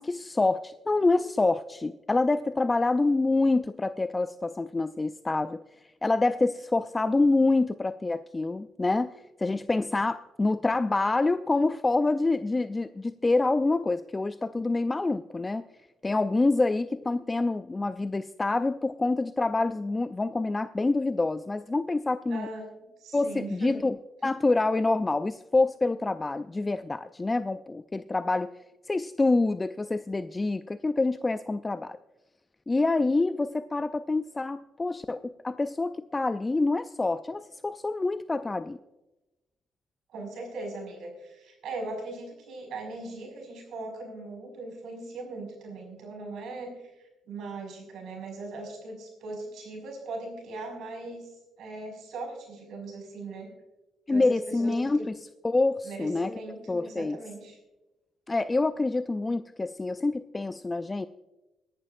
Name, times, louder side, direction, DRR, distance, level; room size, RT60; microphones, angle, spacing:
voice 1, 0.0-5.6 6.0-9.1 9.4-15.6 16.0-22.5 23.1-23.9 24.2-28.5 28.9-32.0 32.7-38.8 54.1-55.1 55.4-56.3 56.7-57.2 58.3-61.1, left 3 dB, 20° left, 12 dB, 0.3 m, -26 dB
voice 2, 22.3-22.7 23.0-23.8 40.1-51.3 51.6-53.5 54.1-55.1 55.8-57.6, right 2 dB, 75° right, 1 dB, 5.4 m, -39 dB
22.5 x 11.0 x 2.5 m, 1.0 s
cardioid pair, 90°, 0 cm